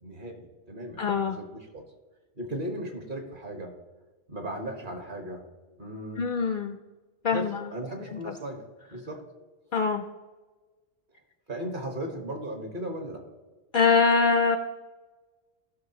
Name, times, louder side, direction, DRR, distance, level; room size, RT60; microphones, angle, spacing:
voice 1, 0.0-1.8 2.4-3.7 4.3-5.4 5.8-6.3 7.2-8.6 8.9-9.2 11.5-13.2, right 1 dB, 45° right, 4 dB, 1.5 m, -36 dB
voice 2, 1.0-1.4 6.2-6.7 7.2-7.6 9.7-10.0 13.7-14.6, left 5 dB, 55° left, 7 dB, 0.6 m, -23 dB
14.5 x 6.0 x 2.9 m, 1.3 s
omnidirectional pair, 1.2 m